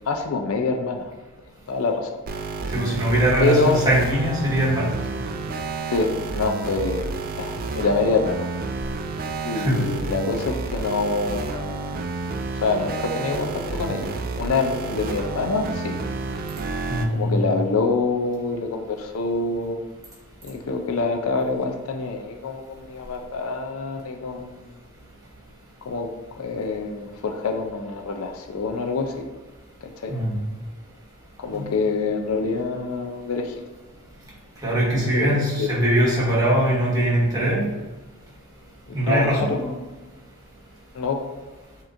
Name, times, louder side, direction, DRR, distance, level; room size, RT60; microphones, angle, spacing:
voice 1, 0.1-1.1 1.7-2.1 3.4-3.8 5.9-8.5 9.4-11.9 12.6-16.0 17.1-19.8 20.4-24.6 25.9-26.1 26.4-29.2 30.0-30.2 31.4-33.5 35.1-35.7 39.1-39.6 40.9-41.2, left 3 dB, 70° left, 4 dB, 0.5 m, -26 dB
sound 1, 2.3-17.1, right 3 dB, 40° right, 0.3 m, -30 dB
voice 2, 2.7-4.8 9.5-9.8 16.9-17.5 30.1-30.4 31.5-31.7 34.6-37.7 38.9-39.7, right 1 dB, 15° right, -6 dB, 1.4 m, -21 dB
7.1 x 2.9 x 2.6 m, 1.2 s
head